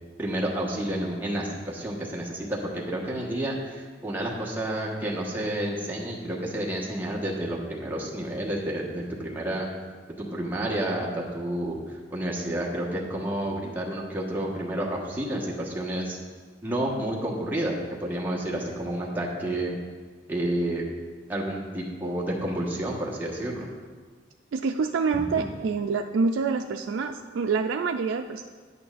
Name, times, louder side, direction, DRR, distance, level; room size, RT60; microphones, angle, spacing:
voice 1, 0.2-9.7 10.2-16.2 16.6-19.8 20.3-20.8 21.3-23.7, right 1 dB, 10° right, -4 dB, 1.2 m, -30 dB
voice 2, 24.5-28.4, right 4 dB, 85° right, 4 dB, 0.3 m, -26 dB
10.5 x 8.6 x 2.5 m, 1.5 s
head